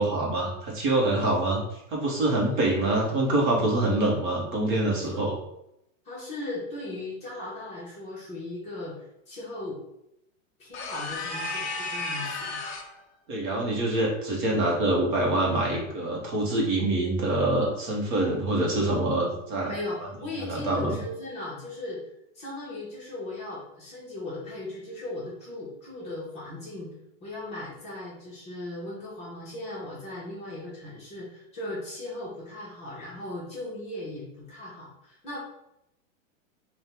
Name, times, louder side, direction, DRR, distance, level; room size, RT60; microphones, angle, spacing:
voice 1, 0.0-1.6 1.9-5.4 13.3-19.7 20.4-21.0, right 2 dB, 40° right, -2 dB, 1.0 m, -25 dB
voice 2, 6.0-8.9 9.3-9.8 10.6-12.6 19.7-22.0 22.3-26.9 27.2-35.4, left 2 dB, 15° left, -7 dB, 1.0 m, -37 dB
sound 1, 10.7-13.0, left 2 dB, 55° left, 0.7 m, -33 dB
3.6 x 2.4 x 4.2 m, 0.82 s
supercardioid pair, 170°, 39 cm